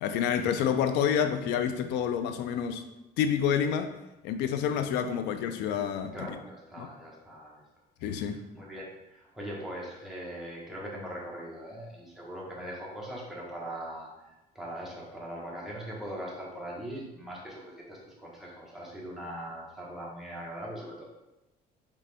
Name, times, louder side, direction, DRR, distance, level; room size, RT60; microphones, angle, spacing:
voice 1, 0.0-2.8 3.2-3.9 4.2-6.4 6.8-6.9 8.0-8.4, left 8 dB, 85° left, 8 dB, 0.4 m, -28 dB
voice 2, 6.1-7.6 8.0-14.1 14.5-21.0, equal, ahead, -5 dB, 1.3 m, -41 dB
3.8 x 3.2 x 3.4 m, 0.96 s
cardioid pair, 110°, 17 cm